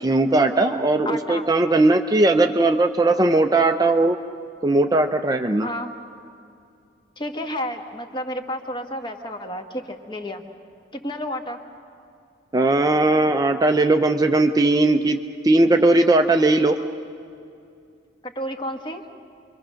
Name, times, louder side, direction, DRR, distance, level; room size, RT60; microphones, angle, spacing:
voice 1, 0.0-4.2 4.6-5.7 12.5-15.2 15.4-16.8, right 2 dB, 20° right, 5 dB, 0.5 m, -18 dB
voice 2, 1.0-1.4 5.6-5.9 7.2-10.4 10.9-11.6 18.2-19.0, equal, 25° left, 5 dB, 1.4 m, -31 dB
27.5 x 23.5 x 6.4 m, 2.5 s
head